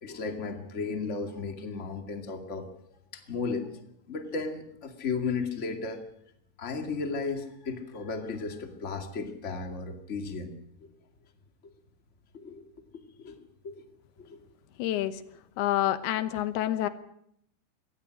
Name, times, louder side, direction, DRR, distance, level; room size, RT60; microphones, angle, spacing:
voice 1, 0.0-2.7 3.1-3.7 4.1-6.0 6.6-10.5 12.3-12.6 13.2-13.4 13.6-13.8 14.3-14.4, left 4 dB, 25° left, 5 dB, 1.6 m, -34 dB
voice 2, 14.8-15.2 15.6-16.9, left 13 dB, 85° left, 12 dB, 3.1 m, -28 dB
22.5 x 18.0 x 6.4 m, 0.72 s
omnidirectional pair, 4.6 m